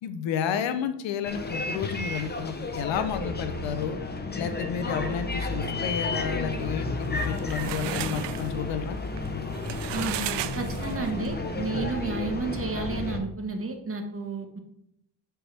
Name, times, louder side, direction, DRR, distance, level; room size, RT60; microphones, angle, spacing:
voice 1, 0.0-4.0 4.4-9.0, left 8 dB, 85° left, 10 dB, 0.8 m, -31 dB
Bus, 1.2-13.2, left 2 dB, 20° left, 0.9 m, -32 dB
sound 1, 7.1-11.2, right 13 dB, 70° right, 0.5 m, -36 dB
voice 2, 9.9-10.3 10.5-14.6, right 3 dB, 30° right, 4 dB, 1.3 m, -32 dB
7.7 x 4.5 x 3.4 m, 0.75 s
cardioid pair, 85°, 44 cm